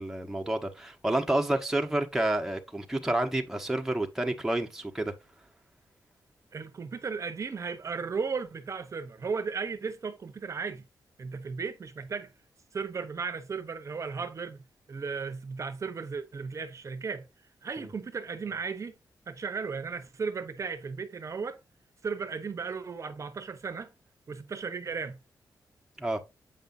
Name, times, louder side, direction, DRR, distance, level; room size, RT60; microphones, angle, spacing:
voice 1, 0.0-5.1 17.8-17.9 26.0-26.2, right 1 dB, 5° right, 1.1 m, -29 dB
voice 2, 6.5-10.8 11.2-12.3 12.7-14.6 14.9-17.3 17.6-18.9 19.3-21.6 22.0-23.9 24.3-25.2, right 5 dB, 45° right, 0.9 m, -35 dB
8.1 x 5.4 x 2.6 m
wide cardioid pair, 110°, 7 cm